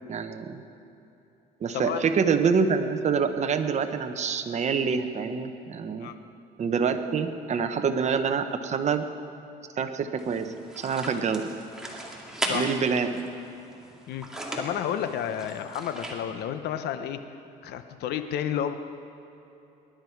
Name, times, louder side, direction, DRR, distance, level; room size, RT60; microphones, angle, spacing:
voice 1, 0.1-0.6 1.6-6.1 6.6-9.0 9.8-11.5 12.4-13.2, right 6 dB, 45° right, 7 dB, 1.0 m, -26 dB
voice 2, 1.7-2.0 6.0-6.1 12.5-12.7 14.1-17.2 17.6-18.7, left 9 dB, 75° left, 9 dB, 0.9 m, -31 dB
sound 1, 10.2-16.1, right 1 dB, 5° right, 2.4 m, -37 dB
20.5 x 11.5 x 4.7 m, 3.0 s
cardioid pair, 110°, 17 cm